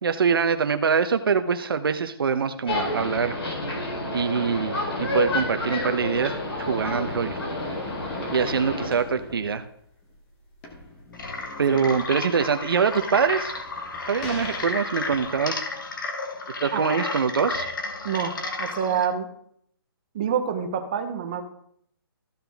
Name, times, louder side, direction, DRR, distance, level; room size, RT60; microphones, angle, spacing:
voice 1, 0.0-3.4 4.1-6.3 6.6-7.4 8.3-9.6 11.6-13.5 14.0-15.6 16.6-17.7, right 6 dB, 65° right, 9 dB, 0.8 m, -24 dB
sound 1, 2.7-8.9, left 1 dB, 80° left, 3.8 m, -29 dB
sound 2, 6.1-15.3, left 2 dB, 10° left, 0.8 m, -43 dB
sound 3, 11.1-19.1, left 3 dB, 55° left, 1.5 m, -32 dB
voice 2, 18.0-19.3 20.1-21.4, right 7 dB, 20° right, 6 dB, 0.7 m, -27 dB
14.5 x 5.8 x 3.5 m, 0.66 s
hypercardioid pair, 180°, 13 cm